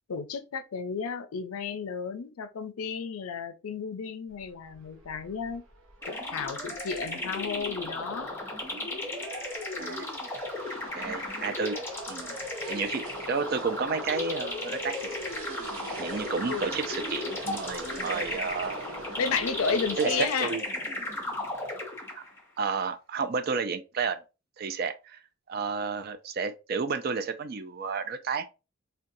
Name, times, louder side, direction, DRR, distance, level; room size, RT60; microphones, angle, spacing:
voice 1, 0.1-5.6 6.1-8.3 16.4-16.6 19.2-20.5, left 5 dB, 75° left, 0.5 m, -32 dB
sound 1, 4.3-20.3, right 2 dB, 70° right, 0.7 m, -43 dB
sound 2, 6.0-22.4, left 2 dB, 10° left, 0.7 m, -35 dB
voice 2, 10.9-11.8 12.1-12.4 12.7-15.2 16.0-18.8 20.0-20.6 22.2-22.3 22.6-24.2 24.6-25.2 25.5-28.5, right 5 dB, 45° right, 0.3 m, -31 dB
3.9 x 2.2 x 2.6 m
head